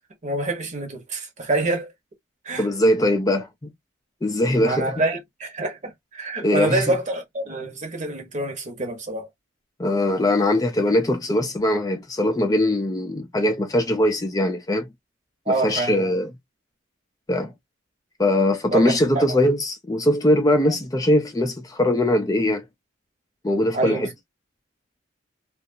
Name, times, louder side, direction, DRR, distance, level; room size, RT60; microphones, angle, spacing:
voice 1, 0.2-1.9 2.4-2.7 4.6-9.3 15.5-16.1 18.7-19.4 20.6-20.7 23.7-24.1, right 2 dB, 40° right, 1.0 m, -26 dB
voice 2, 2.6-3.7 4.2-4.9 6.4-6.8 9.8-14.9 15.5-16.3 17.3-17.5 18.2-22.6 23.4-24.1, left 1 dB, 20° left, 0.4 m, -21 dB
2.6 x 2.4 x 2.5 m
head